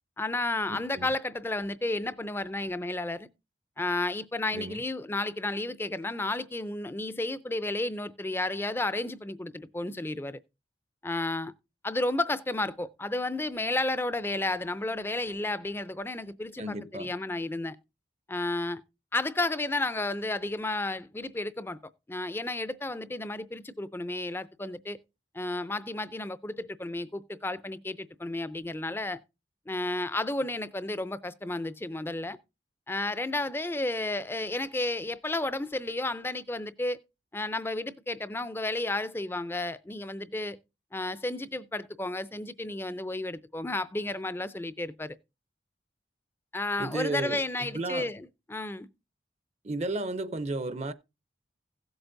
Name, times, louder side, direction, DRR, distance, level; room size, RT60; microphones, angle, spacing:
voice 1, 0.2-3.3 3.8-10.4 11.0-11.5 11.8-17.8 18.3-18.8 19.1-21.8 22.1-25.0 25.3-29.2 29.7-32.4 32.9-37.0 37.3-40.6 40.9-45.2 46.5-48.9, left 2 dB, 10° left, 0.4 m, -32 dB
voice 2, 0.7-1.1 4.5-4.8 16.6-17.1 46.8-48.1 49.6-50.9, right 2 dB, 35° right, 0.6 m, -34 dB
16.5 x 7.9 x 2.6 m
head